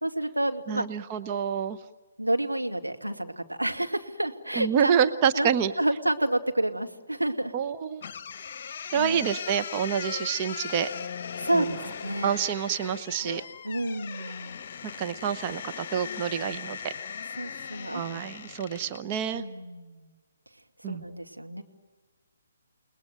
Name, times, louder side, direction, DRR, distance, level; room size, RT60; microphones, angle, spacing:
voice 1, 0.0-0.9 2.2-5.0 5.3-5.5 5.8-7.5 9.0-9.3 11.4-12.3 13.6-14.6 17.4-18.0 19.3-20.1 20.8-21.6, right 1 dB, 85° right, 4 dB, 2.4 m, -29 dB
voice 2, 0.7-1.8 4.5-5.7 7.5-8.0 8.9-10.9 11.5-11.8 12.2-13.4 15.0-16.9 17.9-19.4 20.8-21.0, right 8 dB, 25° right, 9 dB, 0.9 m, -27 dB
sound 1, 8.0-19.1, left 7 dB, 40° left, 1.2 m, -39 dB
29.5 x 20.5 x 9.2 m, 1.3 s
figure-of-eight pair, 135°, 0 cm